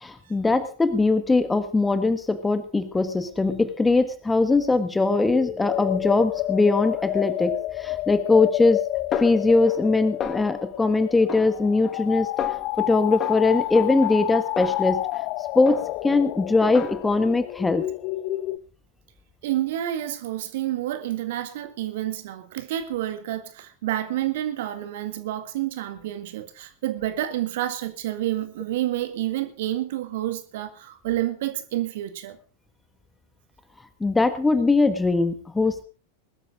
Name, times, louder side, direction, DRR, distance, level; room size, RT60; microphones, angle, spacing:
voice 1, 0.0-8.8 9.2-12.3 12.8-15.1 15.5-15.8 16.0-17.9 34.0-35.8, left 3 dB, 10° left, 1.6 m, -21 dB
sound 1, 5.3-18.6, left 16 dB, 40° left, 0.8 m, -30 dB
Snare drum, 9.1-9.9 10.2-10.8 11.3-12.1 12.4-12.8 13.2-15.3 15.7-16.2 16.6-17.3, left 7 dB, 25° left, 1.5 m, -34 dB
voice 2, 19.4-32.4, right 13 dB, 55° right, 1.9 m, -29 dB
20.5 x 13.0 x 3.8 m
figure-of-eight pair, 90°, 0 cm